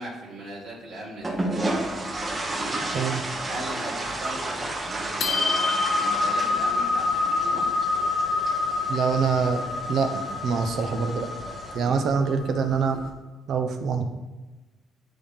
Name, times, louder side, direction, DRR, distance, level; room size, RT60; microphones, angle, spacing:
voice 1, 0.0-1.4 2.5-2.8 3.4-7.7 11.8-12.3, right 1 dB, 85° right, -7 dB, 2.0 m, -38 dB
sound 1, 1.2-3.3 3.5-3.7 4.1-4.6 5.0-13.1, left 3 dB, 65° left, 1.0 m, -27 dB
sound 2, 1.2-11.8, right 2 dB, 30° right, 1.0 m, -32 dB
voice 2, 8.9-11.3 11.7-13.0 13.5-14.1, right 5 dB, 65° right, 7 dB, 0.7 m, -25 dB
9.3 x 3.6 x 3.4 m, 1.1 s
cardioid pair, 85°, 0 cm